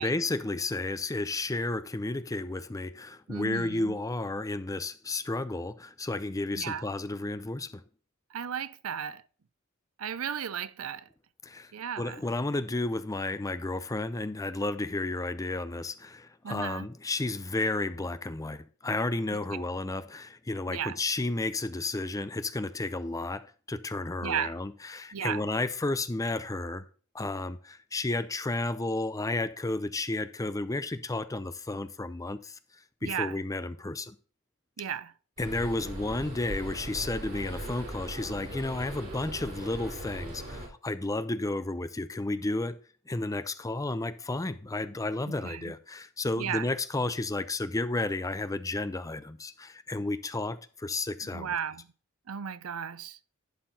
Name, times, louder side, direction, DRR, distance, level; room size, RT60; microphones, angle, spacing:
voice 1, 0.0-7.8 11.4-11.7 12.0-26.9 27.1-32.6 33.0-34.2 35.4-42.8 43.1-51.5, left 2 dB, 15° left, 0.5 m, -32 dB
voice 2, 3.3-4.0 6.6-6.9 8.3-9.2 10.0-11.1 11.7-12.2 16.4-16.9 19.5-19.6 20.7-21.0 24.2-24.5 25.1-25.5 33.0-33.4 34.8-35.1 45.3-45.7 46.3-46.7 51.3-51.8 52.3-53.2, right 8 dB, 80° right, 0.6 m, -35 dB
sound 1, 35.4-40.7, right 1 dB, 45° right, 3.3 m, -39 dB
11.5 x 4.5 x 4.0 m
head